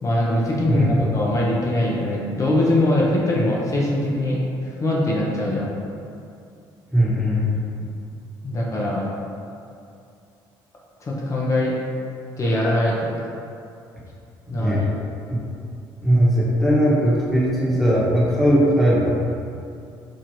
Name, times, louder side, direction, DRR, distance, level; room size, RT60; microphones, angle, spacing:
voice 1, 0.0-4.4 4.8-5.7 8.4-9.0 11.0-11.8 12.4-13.1 14.5-14.8, left 1 dB, 35° left, -4 dB, 0.6 m, -22 dB
voice 2, 0.6-1.0 6.9-7.5 14.6-14.9 15.3-15.4 16.0-19.2, equal, ahead, -7 dB, 1.1 m, -19 dB
4.5 x 2.4 x 2.9 m, 2.5 s
supercardioid pair, 80°, 9 cm